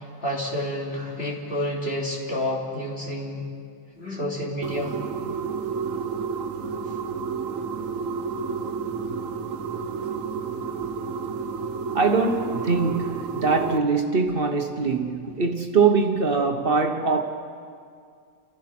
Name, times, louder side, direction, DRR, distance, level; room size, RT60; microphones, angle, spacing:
voice 1, 0.0-3.5 4.0-5.0 6.9-7.0, left 1 dB, 50° left, 3.6 m, -29 dB
sound 1, 4.6-13.8, right 5 dB, 90° right, 1.4 m, -30 dB
voice 2, 11.9-17.2, right 4 dB, 45° right, 1.3 m, -22 dB
29.5 x 15.5 x 6.0 m
omnidirectional pair, 1.3 m